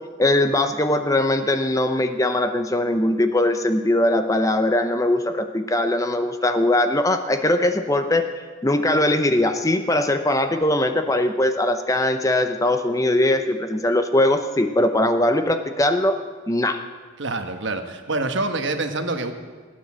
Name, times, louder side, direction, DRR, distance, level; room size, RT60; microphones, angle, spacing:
voice 1, 0.2-8.3 8.6-16.2 16.5-16.8, left 1 dB, 15° left, 8 dB, 0.6 m, -20 dB
voice 2, 17.2-19.3, right 2 dB, 65° right, 7 dB, 1.2 m, -26 dB
17.0 x 9.5 x 7.4 m, 1.5 s
head